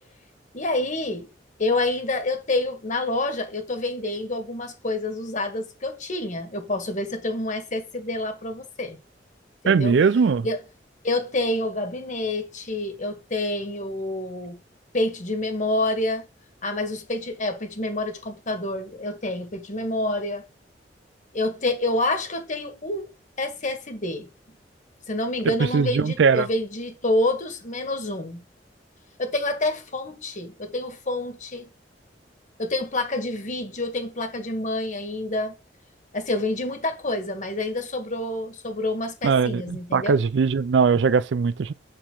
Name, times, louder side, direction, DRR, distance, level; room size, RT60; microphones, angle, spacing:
voice 1, 0.5-1.3 1.6-9.0 9.6-10.0 10.4-10.6 11.0-14.6 14.9-16.3 16.6-20.4 21.3-23.1 23.4-24.3 25.1-28.4 29.2-31.7 32.6-35.5 36.1-40.2, left 2 dB, 45° left, 1.8 m, -28 dB
voice 2, 9.7-10.5 25.7-26.5 39.2-41.7, right 5 dB, 75° right, 0.4 m, -20 dB
7.9 x 6.3 x 3.9 m
head